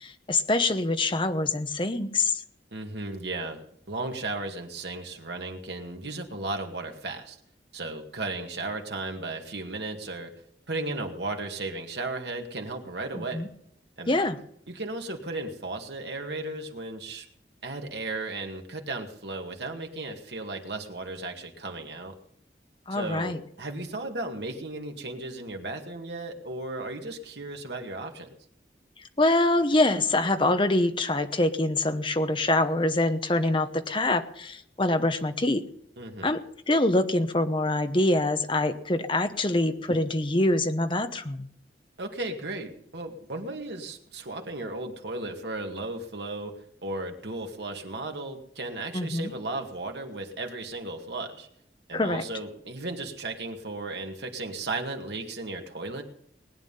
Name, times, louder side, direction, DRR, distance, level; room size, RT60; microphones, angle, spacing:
voice 1, 0.0-2.4 13.1-13.5 14.1-14.4 22.9-23.4 29.2-35.6 36.2-36.4 36.7-41.5 48.9-49.3 51.9-52.2, left 2 dB, 30° left, 9 dB, 1.0 m, -25 dB
voice 2, 2.7-7.4 7.7-10.3 10.7-13.4 14.0-14.2 14.7-17.3 17.6-22.2 22.9-28.3 36.0-36.3 42.0-46.5 46.8-51.5 51.9-56.0, right 2 dB, 75° right, 3 dB, 2.1 m, -35 dB
19.5 x 9.5 x 5.6 m, 0.72 s
head